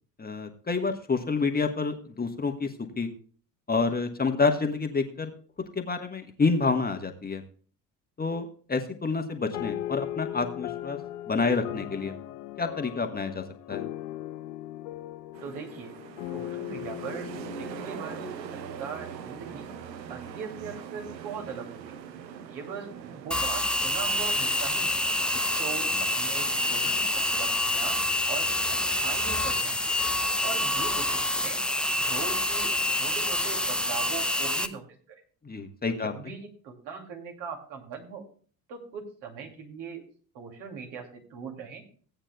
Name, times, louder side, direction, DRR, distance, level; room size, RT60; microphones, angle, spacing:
voice 1, 0.2-3.1 3.7-5.3 5.7-7.4 8.2-11.0 11.3-12.2 12.6-13.8 35.4-36.1, left 4 dB, 20° left, 5 dB, 1.3 m, -28 dB
sound 1, 9.5-19.3, left 13 dB, 70° left, 0.8 m, -38 dB
sound 2, 15.3-27.4, right 8 dB, 80° right, 0.8 m, -43 dB
voice 2, 15.4-15.9 16.3-17.3 17.6-19.7 20.1-22.0 22.5-25.0 25.6-25.9 26.2-28.0 28.3-29.9 30.4-31.6 32.0-32.7 33.0-35.2 35.9-38.2 38.7-40.0 40.3-41.8, right 5 dB, 60° right, 2 dB, 2.6 m, -40 dB
sound 3, 23.3-34.7, left 1 dB, ahead, 0.5 m, -27 dB
17.0 x 8.8 x 2.2 m, 0.42 s
figure-of-eight pair, 60°, 50 cm